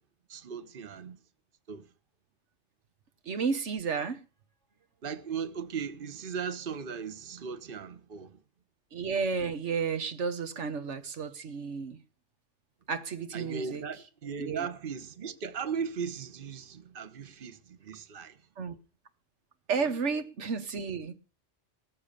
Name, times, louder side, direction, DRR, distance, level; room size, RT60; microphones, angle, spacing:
voice 1, 0.3-1.2 1.7-1.9 5.0-8.4 13.3-18.4 19.8-19.9, right 6 dB, 50° right, 1.2 m, -37 dB
voice 2, 3.3-4.2 8.9-12.0 12.9-13.8 14.4-14.7 18.6-18.8 19.7-21.1, right 5 dB, 90° right, 1.5 m, -32 dB
20.5 x 7.2 x 6.7 m
omnidirectional pair, 1.2 m